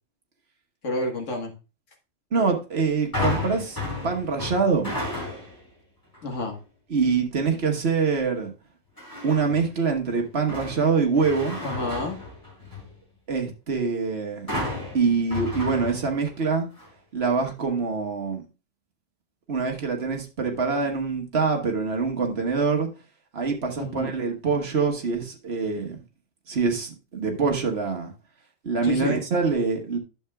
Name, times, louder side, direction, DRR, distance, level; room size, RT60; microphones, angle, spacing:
voice 1, 0.8-1.5 6.2-6.6 11.6-12.2 23.8-24.1 28.8-29.2, left 2 dB, 65° left, 1.8 m, -29 dB
voice 2, 2.3-3.8 4.0-4.9 6.9-8.5 9.2-11.6 13.3-14.5 14.9-16.7 17.1-18.4 19.5-22.9 23.3-26.0 26.5-28.1 28.6-30.0, right 5 dB, 55° right, 1.5 m, -25 dB
sound 1, 3.1-5.7 6.1-6.5 9.0-9.6 10.1-13.0 14.5-16.4 16.8-16.9, left 2 dB, 15° left, 5.0 m, -32 dB
11.0 x 6.9 x 2.3 m
omnidirectional pair, 1.3 m